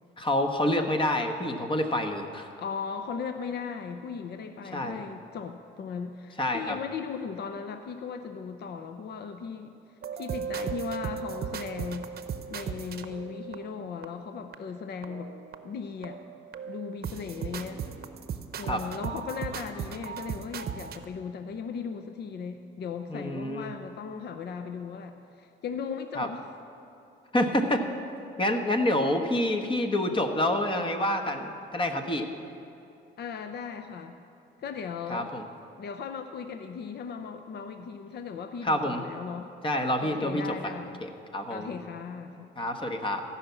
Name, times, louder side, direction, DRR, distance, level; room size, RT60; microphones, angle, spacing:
voice 1, 0.2-2.5 4.7-5.0 6.4-6.8 18.7-18.8 23.1-23.7 26.2-26.3 27.3-27.8 28.4-32.3 35.1-35.5 38.6-39.0 39.6-40.7 41.0-41.7 42.6-43.2, left 1 dB, 25° left, 5 dB, 1.1 m, -27 dB
voice 2, 2.6-9.7 10.1-12.1 12.5-15.3 15.6-16.2 16.7-17.9 18.6-26.4 27.7-27.8 33.2-34.2 34.6-35.3 35.8-39.5 40.0-41.1 41.5-42.6, left 6 dB, 55° left, 8 dB, 0.6 m, -37 dB
sound 1, 10.0-14.0 14.5-14.6 15.0-15.8 16.0-21.0, right 7 dB, 50° right, 0.8 m, -37 dB
14.5 x 5.8 x 8.2 m, 2.8 s
cardioid pair, 90°, 20 cm